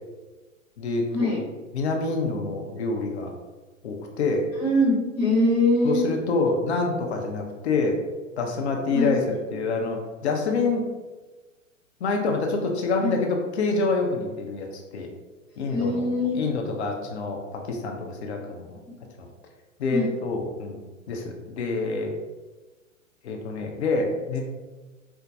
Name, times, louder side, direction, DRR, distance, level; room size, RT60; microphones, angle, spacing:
voice 1, 0.8-1.4 1.7-3.3 3.8-4.4 5.8-8.0 8.4-10.9 12.0-15.1 15.6-16.1 16.3-18.8 19.2-19.3 19.8-20.8 21.1-22.1 23.2-24.4, left 3 dB, 55° left, 2 dB, 0.7 m, -27 dB
voice 2, 4.6-6.0 8.9-9.1 13.0-13.2 15.6-16.5 19.9-20.1, left 1 dB, 5° right, -13 dB, 0.4 m, -23 dB
4.6 x 2.2 x 2.6 m, 1.2 s
figure-of-eight pair, 105°, 40 cm